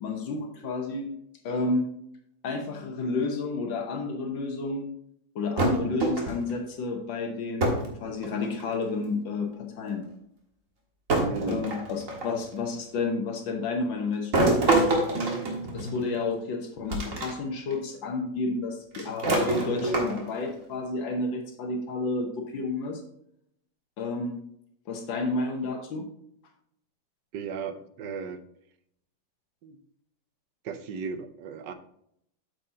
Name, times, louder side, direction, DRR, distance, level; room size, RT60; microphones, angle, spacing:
voice 1, 0.0-1.1 1.4-1.9 2.4-4.9 5.4-7.7 8.0-10.0 11.4-14.7 15.7-23.0 24.0-24.4 24.9-26.1, left 3 dB, 85° left, 3 dB, 1.8 m, -31 dB
sound 1, 5.6-6.5 7.6-7.9 8.2-8.8 9.9-10.0 11.1-12.4 14.3-16.2 16.9-17.3 17.7-17.8 18.9-20.4, right 2 dB, 45° right, 1.9 m, -26 dB
voice 2, 11.2-11.7 27.3-28.4 29.6-29.8 30.6-31.7, right 5 dB, 70° right, 9 dB, 1.4 m, -35 dB
8.3 x 7.1 x 2.8 m, 0.73 s
omnidirectional pair, 2.0 m